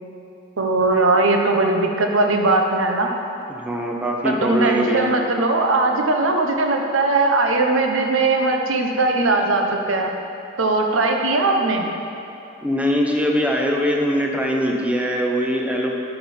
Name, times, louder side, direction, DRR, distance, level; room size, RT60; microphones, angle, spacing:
voice 1, 0.6-3.1 4.2-10.1 10.6-11.9, right 2 dB, 85° right, 2 dB, 0.9 m, -19 dB
voice 2, 3.6-5.1 12.6-16.0, equal, 5° right, 0 dB, 0.7 m, -22 dB
12.0 x 5.4 x 4.3 m, 2.9 s
head